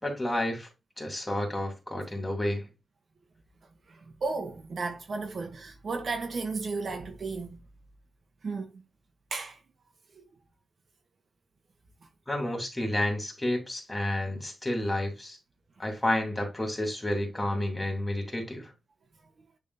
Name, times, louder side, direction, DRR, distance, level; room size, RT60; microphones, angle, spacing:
voice 1, 0.0-0.7 1.0-2.7 12.3-15.4 15.8-18.7, left 1 dB, 10° left, 2.9 m, -30 dB
voice 2, 3.9-7.6 8.4-8.8 9.3-9.6 10.1-10.2, right 3 dB, 55° right, 1.1 m, -34 dB
10.0 x 3.6 x 2.7 m
wide cardioid pair, 120°, 0 cm